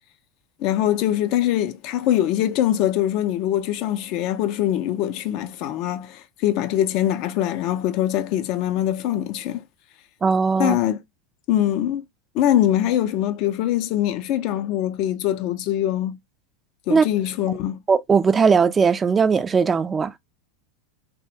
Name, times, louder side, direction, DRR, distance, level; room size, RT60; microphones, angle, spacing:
voice 1, 0.6-9.6 10.6-11.0 11.5-12.0 12.3-16.2 16.9-17.8, left 12 dB, 50° left, 0.4 m, -23 dB
voice 2, 10.2-10.8 16.9-17.1 17.9-20.1, right 5 dB, 20° right, 0.3 m, -18 dB
3.1 x 2.1 x 2.7 m
figure-of-eight pair, 85°, 0 cm